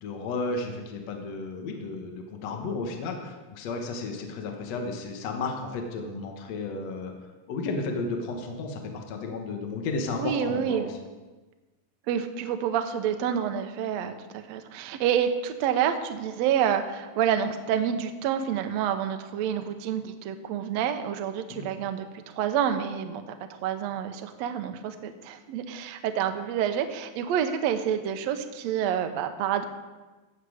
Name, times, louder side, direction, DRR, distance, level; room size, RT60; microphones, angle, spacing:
voice 1, 0.0-7.1 7.5-11.0 21.6-21.7, left 3 dB, 60° left, 2 dB, 1.9 m, -33 dB
voice 2, 10.2-10.9 12.1-22.1 22.3-23.3 23.6-29.6, right 9 dB, 85° right, 7 dB, 1.5 m, -28 dB
17.0 x 6.8 x 4.9 m, 1.2 s
omnidirectional pair, 4.1 m